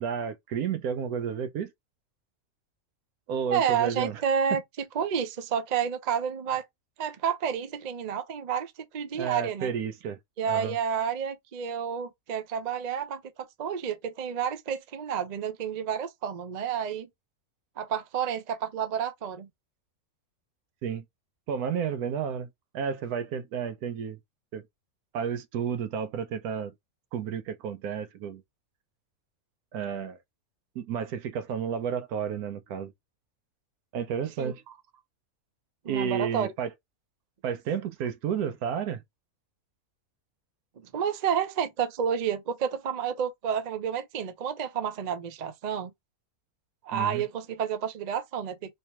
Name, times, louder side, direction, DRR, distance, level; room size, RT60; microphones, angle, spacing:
voice 1, 0.0-1.7 3.3-4.2 9.1-10.2 10.5-10.7 20.8-21.0 21.5-22.5 22.7-24.2 24.5-24.6 25.1-26.7 27.1-28.4 29.7-30.2 30.8-32.9 33.9-34.6 35.9-36.7 37.4-39.0 46.9-47.2, right 7 dB, 85° right, 1.2 m, -31 dB
voice 2, 3.5-6.6 7.0-9.7 10.4-17.1 17.8-19.5 34.4-34.5 35.8-36.5 40.8-45.9 46.8-48.8, right 7 dB, 50° right, 0.5 m, -30 dB
3.3 x 3.0 x 2.8 m
omnidirectional pair, 1.5 m